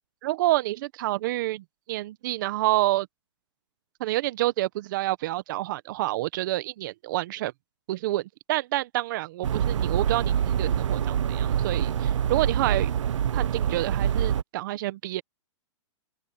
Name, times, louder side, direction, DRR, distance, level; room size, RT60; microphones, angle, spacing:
voice 1, 0.2-3.1 4.0-7.5 7.9-12.9 13.3-15.2, right 17 dB, 40° right, 1.1 m, -28 dB
sound 1, 9.4-14.4, right 9 dB, 75° right, 0.9 m, -25 dB
open air
hypercardioid pair, 155°, 16 cm